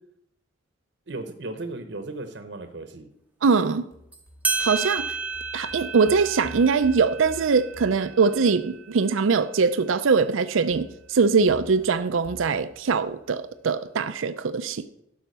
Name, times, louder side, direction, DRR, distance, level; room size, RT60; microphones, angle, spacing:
voice 1, 1.1-3.1, right 2 dB, 60° right, 0.9 m, -36 dB
voice 2, 3.4-3.9 4.6-5.1 5.5-14.9, right 5 dB, 85° right, 0.5 m, -22 dB
sound 1, 3.9-8.9 10.7-13.7, equal, 15° left, 1.0 m, -48 dB
sound 2, 4.1-4.2 4.4-9.5, right 4 dB, 10° right, 0.7 m, -32 dB
12.5 x 5.6 x 6.7 m
head